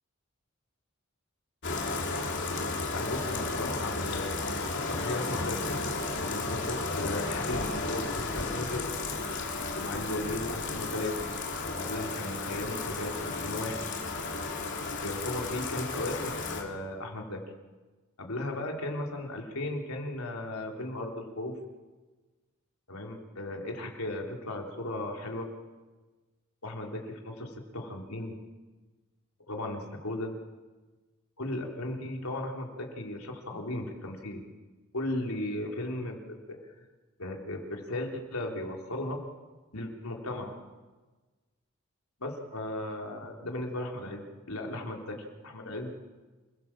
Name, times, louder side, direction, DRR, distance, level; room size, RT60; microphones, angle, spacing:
Bathtub (filling or washing), 1.6-16.6, left 3 dB, 55° left, 3.4 m, -33 dB
voice 1, 2.9-4.3 4.7-5.8 6.2-8.9 9.7-11.1 11.6-13.8 15.0-17.4 18.2-21.5 22.9-25.5 26.6-28.4 29.5-30.4 31.4-34.4 34.9-36.6 37.2-39.2 39.7-40.6 42.2-45.2 45.4-45.9, left 1 dB, 90° left, 1 dB, 3.8 m, -36 dB
28.0 x 17.0 x 7.5 m, 1.3 s
head